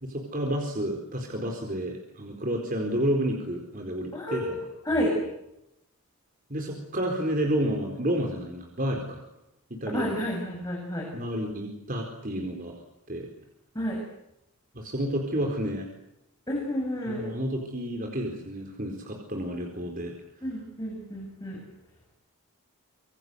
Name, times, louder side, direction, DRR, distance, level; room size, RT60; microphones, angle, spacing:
voice 1, 0.0-4.6 6.5-9.2 9.7-10.1 11.1-12.8 13.1-13.3 14.7-15.9 17.1-20.1, equal, 40° right, 2 dB, 4.4 m, -30 dB
voice 2, 4.1-4.6 4.9-5.2 9.9-11.1 13.7-14.0 16.5-17.2 20.4-21.6, equal, 15° left, -1 dB, 7.4 m, -30 dB
26.5 x 24.0 x 8.1 m, 0.85 s
head